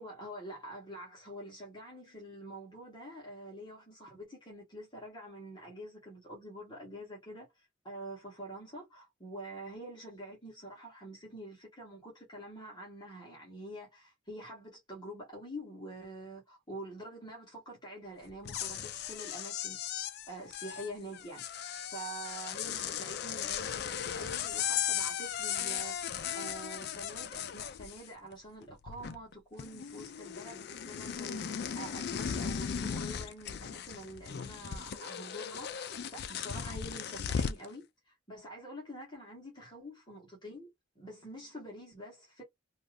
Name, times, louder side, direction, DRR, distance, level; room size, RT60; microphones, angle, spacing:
voice 1, 0.0-21.4 21.9-26.0 26.3-40.7 41.0-42.4, right 1 dB, 20° left, 1.1 m, -46 dB
sound 1, 18.3-28.3 28.6-29.3 29.6-37.7, left 8 dB, 50° left, 0.3 m, -37 dB
2.6 x 2.4 x 3.2 m
head